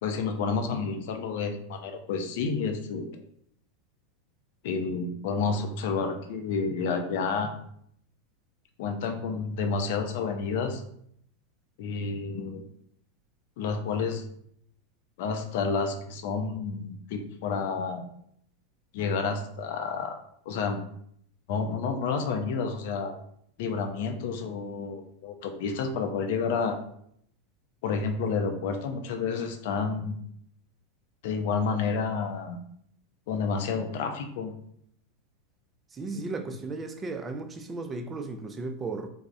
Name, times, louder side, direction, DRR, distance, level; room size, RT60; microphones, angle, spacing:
voice 1, 0.0-3.1 4.6-7.5 8.8-10.8 11.8-12.6 13.6-14.2 15.2-18.0 18.9-20.2 20.5-20.8 21.5-23.1 23.6-26.8 27.8-30.1 31.2-32.6 33.3-34.5, left 5 dB, 65° left, 0.4 m, -30 dB
voice 2, 35.9-39.1, right 3 dB, 25° right, 0.3 m, -35 dB
3.3 x 2.0 x 2.4 m
hypercardioid pair, 95°, 0 cm